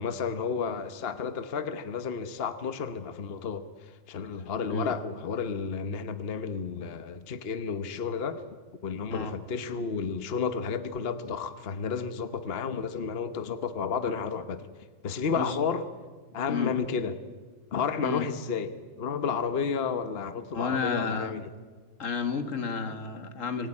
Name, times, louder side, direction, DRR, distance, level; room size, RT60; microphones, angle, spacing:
voice 1, 0.0-8.4 8.8-14.7 15.0-15.8 16.3-17.1 17.7-18.7 19.0-21.4, left 6 dB, 50° left, 11 dB, 1.2 m, -32 dB
voice 2, 4.3-4.9 9.1-9.3 15.3-15.6 16.5-16.8 18.0-18.3 20.5-21.3 22.0-23.7, left 5 dB, 80° left, 9 dB, 2.0 m, -31 dB
25.5 x 18.0 x 9.9 m, 1.4 s
omnidirectional pair, 1.3 m